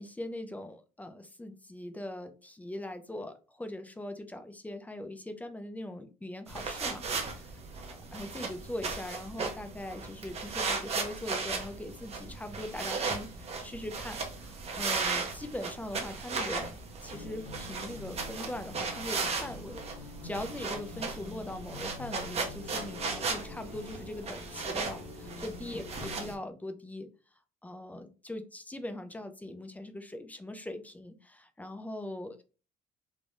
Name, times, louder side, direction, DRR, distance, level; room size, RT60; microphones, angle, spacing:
voice 1, 0.0-7.6 7.9-16.7 17.0-27.1 27.6-32.4, left 1 dB, 10° left, 8 dB, 0.4 m, -41 dB
sound 1, 6.5-26.3, right 4 dB, 40° right, 0.7 m, -36 dB
sound 2, 17.1-26.3, left 5 dB, 85° left, 0.9 m, -47 dB
3.2 x 2.1 x 2.5 m, 0.34 s
cardioid pair, 110°, 17 cm